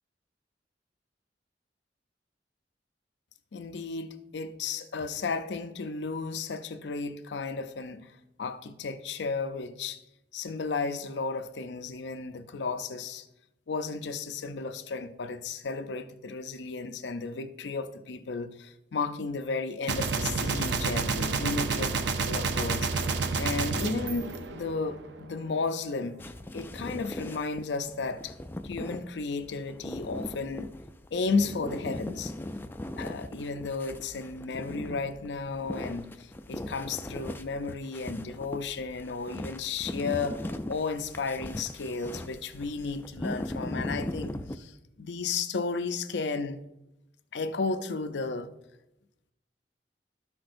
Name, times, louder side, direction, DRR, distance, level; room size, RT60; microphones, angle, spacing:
voice 1, 3.5-10.0 10.3-13.3 13.7-22.9 23.4-26.2 26.5-28.3 28.6-30.7 31.1-32.3 33.0-46.6 47.3-48.5, left 4 dB, 80° left, 0.6 m, -33 dB
Gunshot gunfire, 19.9-25.1, right 4 dB, 80° right, 0.6 m, -29 dB
sound 1, 26.2-44.6, left 1 dB, 10° left, 0.3 m, -39 dB
13.5 x 6.0 x 2.6 m
head